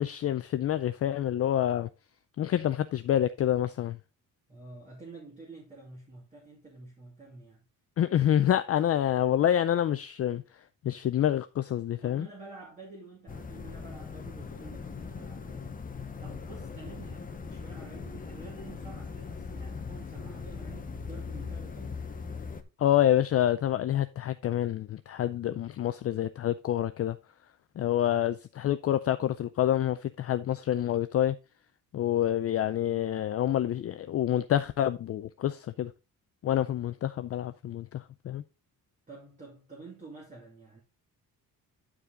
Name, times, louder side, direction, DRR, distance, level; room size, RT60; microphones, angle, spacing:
voice 1, 0.0-1.9 2.4-4.0 8.0-10.4 10.8-12.3 22.8-27.2 27.8-31.4 31.9-35.9 36.4-38.4, left 11 dB, 45° left, 0.4 m, -27 dB
voice 2, 4.5-7.6 12.0-15.8 16.2-22.0 28.0-28.2 39.1-40.8, right 3 dB, 20° right, 2.2 m, -49 dB
sound 1, 13.3-22.6, left 5 dB, 25° left, 0.8 m, -40 dB
10.0 x 4.8 x 3.7 m
cardioid pair, 150°, 35 cm